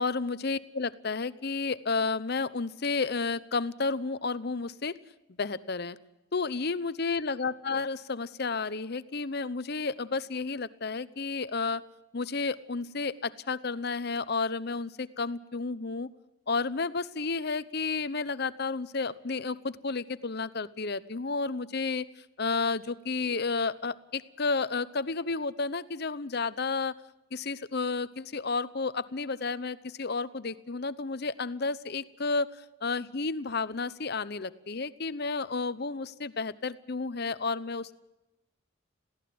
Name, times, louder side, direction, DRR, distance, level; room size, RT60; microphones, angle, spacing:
voice 1, 0.0-5.0 5.4-6.0 6.3-11.8 12.1-16.1 16.5-22.1 22.4-26.9 27.3-32.5 32.8-37.9, left 4 dB, 50° left, 16 dB, 0.8 m, -31 dB
22.0 x 16.5 x 7.8 m, 0.98 s
head